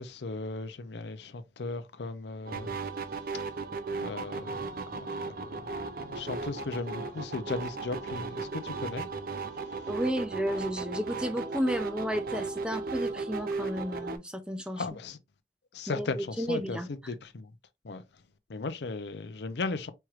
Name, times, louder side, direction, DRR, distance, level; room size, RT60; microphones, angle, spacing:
voice 1, 0.0-2.7 4.0-9.1 14.8-15.2 15.7-16.8 17.1-17.5 17.8-18.0 18.5-19.9, left 3 dB, 75° left, 0.6 m, -37 dB
sound 1, 2.5-14.2, right 3 dB, 55° right, 0.6 m, -36 dB
voice 2, 9.9-14.9 15.9-16.9, equal, 5° right, 0.4 m, -32 dB
4.4 x 3.1 x 2.4 m
head